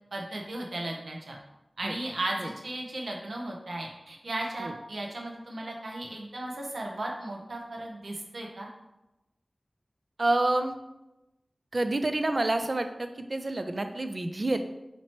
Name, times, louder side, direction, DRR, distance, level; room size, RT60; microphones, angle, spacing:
voice 1, 0.1-1.4 1.8-8.7, right 1 dB, 90° right, -1 dB, 0.7 m, -36 dB
voice 2, 10.2-10.7 11.7-14.7, right 2 dB, 55° right, 8 dB, 0.3 m, -28 dB
4.2 x 2.9 x 2.9 m, 0.96 s
wide cardioid pair, 50°, 0 cm